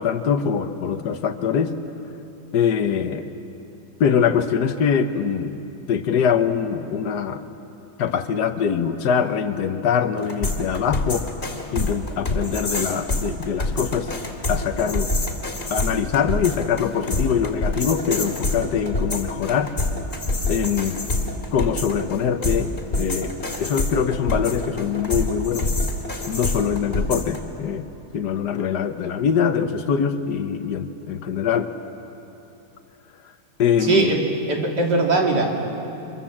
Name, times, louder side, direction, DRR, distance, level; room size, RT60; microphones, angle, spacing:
voice 1, 0.0-1.8 2.5-3.3 4.0-5.6 5.9-7.4 8.0-11.3 11.7-14.2 14.5-15.1 15.7-19.8 20.5-21.0 21.5-25.7 26.3-27.9 28.1-31.7 33.6-34.1, left 7 dB, 75° left, 9 dB, 1.6 m, -23 dB
sound 1, 10.2-27.4, left 2 dB, 35° left, 2.4 m, -27 dB
voice 2, 33.8-34.2 34.5-35.5, right 3 dB, 80° right, 0 dB, 3.2 m, -20 dB
25.0 x 23.5 x 7.3 m, 2.9 s
omnidirectional pair, 1.8 m